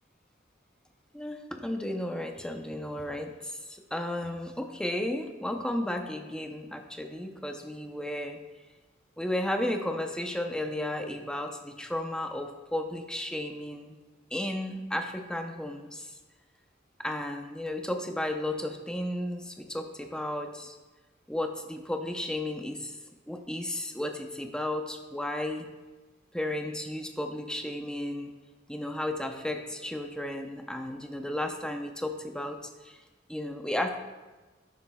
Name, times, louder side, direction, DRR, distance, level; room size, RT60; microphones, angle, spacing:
voice 1, 1.1-8.4 9.2-14.0 14.3-16.1 17.0-20.8 21.3-23.0 23.3-25.7 26.3-28.3 28.7-33.0 33.3-33.9, left 1 dB, 5° left, 4 dB, 0.6 m, -33 dB
11.5 x 9.2 x 2.3 m, 1.2 s
head